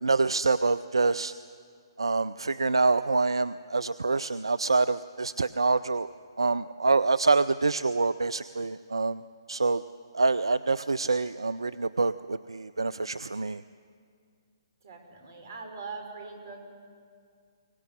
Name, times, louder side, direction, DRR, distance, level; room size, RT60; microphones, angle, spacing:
voice 1, 0.0-1.3 2.0-6.1 6.4-9.2 9.5-9.8 10.1-13.6, right 3 dB, 80° right, 16 dB, 0.5 m, -26 dB
voice 2, 14.8-16.6, right 4 dB, 50° right, 4 dB, 5.2 m, -41 dB
23.0 x 18.0 x 9.8 m, 2.2 s
figure-of-eight pair, 130°, 3 cm